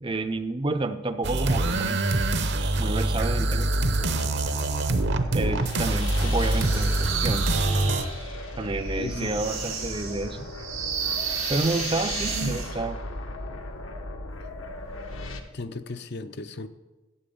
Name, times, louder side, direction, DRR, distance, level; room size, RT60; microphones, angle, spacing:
voice 1, 0.0-2.0 2.6-3.7 5.3-7.5 8.6-10.5 11.5-13.0, right 2 dB, 25° right, 0.5 m, -29 dB
sound 1, 1.2-8.0, right 2 dB, 55° right, 0.8 m, -24 dB
sound 2, 3.4-15.4, left 2 dB, 75° left, 1.1 m, -36 dB
sound 3, 6.4-12.8, right 7 dB, 85° right, 2.0 m, -33 dB
voice 2, 9.0-9.4 10.1-10.5 15.5-16.7, left 3 dB, 50° left, 0.6 m, -36 dB
8.6 x 7.6 x 8.6 m
head